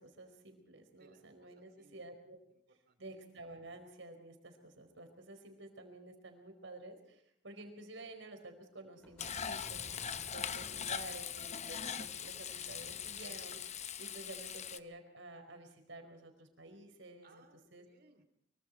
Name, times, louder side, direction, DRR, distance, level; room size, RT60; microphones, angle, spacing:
voice 1, 0.0-2.4 3.0-9.9 10.3-17.9, right 2 dB, 75° right, 5 dB, 4.8 m, -51 dB
voice 2, 1.0-1.5 1.8-2.0 2.7-3.0 17.2-18.2, right 3 dB, 55° right, 8 dB, 2.9 m, -65 dB
sound 1, 9.0-14.0, equal, 5° left, 3.3 m, -57 dB
Frying (food), 9.2-14.8, left 8 dB, 35° left, 0.8 m, -41 dB
24.5 x 24.0 x 4.5 m, 0.74 s
head